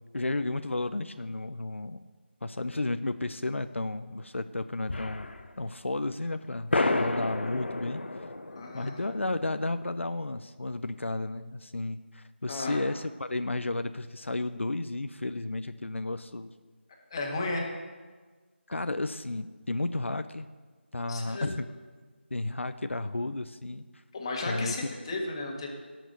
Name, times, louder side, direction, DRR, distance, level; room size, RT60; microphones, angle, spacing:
voice 1, 0.1-2.0 2.4-5.3 5.6-8.0 8.7-16.5 18.7-20.5 20.9-21.7 22.3-24.0 24.5-24.7, left 2 dB, 85° left, 10 dB, 0.6 m, -33 dB
sound 1, 4.9-5.6 6.0-6.1 6.7-9.8, left 2 dB, 65° left, 1.0 m, -31 dB
voice 2, 8.5-8.9 12.5-12.8 17.1-17.7 21.1-21.5 24.1-25.7, left 2 dB, 25° left, 0 dB, 1.7 m, -34 dB
17.5 x 6.1 x 6.7 m, 1.4 s
figure-of-eight pair, 165°, 7 cm